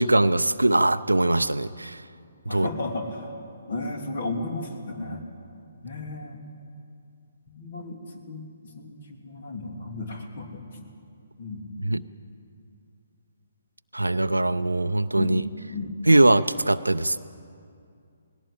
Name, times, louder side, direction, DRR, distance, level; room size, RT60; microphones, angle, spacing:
voice 1, 0.0-2.0 2.5-2.7 11.8-12.0 13.9-15.4 16.1-17.2, right 2 dB, 85° right, 11 dB, 0.6 m, -21 dB
voice 2, 2.5-3.3 3.7-5.2 5.8-6.4 7.5-8.4 8.7-10.8 11.4-11.9 15.1-15.4 15.7-15.9, left 2 dB, 55° left, 3 dB, 3.2 m, -34 dB
19.0 x 16.5 x 8.8 m, 2.4 s
figure-of-eight pair, 135°, 0 cm